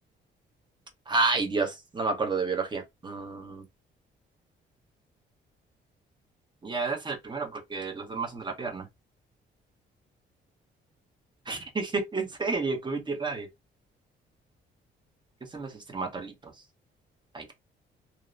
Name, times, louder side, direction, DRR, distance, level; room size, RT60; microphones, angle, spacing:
voice 1, 1.1-3.6 6.6-8.8 11.5-13.5 15.5-16.3 17.3-17.5, right 3 dB, 25° right, 0.9 m, -30 dB
2.8 x 2.0 x 2.5 m
cardioid pair, 90°, 20 cm